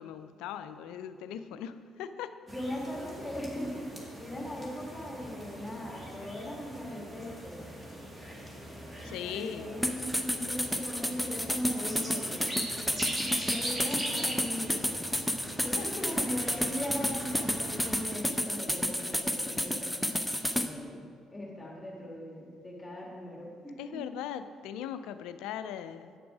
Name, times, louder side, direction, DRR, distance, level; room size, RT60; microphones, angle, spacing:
voice 1, 0.0-2.3 9.0-9.7 15.5-15.9 23.8-26.2, left 9 dB, 70° left, 11 dB, 0.4 m, -39 dB
voice 2, 2.5-7.6 9.0-15.0 15.6-20.0 20.5-21.1 21.3-24.2, equal, 15° left, -3 dB, 1.9 m, -39 dB
sound 1, 2.5-18.1, equal, 20° right, 2.1 m, -42 dB
sound 2, 9.8-20.7, equal, ahead, 0.7 m, -31 dB
8.7 x 6.9 x 4.9 m, 2.1 s
hypercardioid pair, 50°, 0 cm